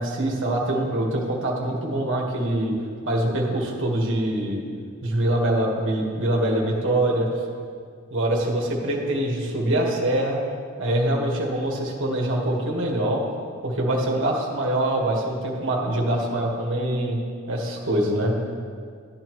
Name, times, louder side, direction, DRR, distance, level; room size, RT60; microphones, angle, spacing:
voice 1, 0.0-2.7 3.0-4.6 5.0-7.3 8.1-10.4 10.8-13.2 13.6-17.2 17.5-18.3, right 1 dB, 60° right, -1 dB, 1.6 m, -24 dB
12.5 x 9.6 x 3.1 m, 2.1 s
head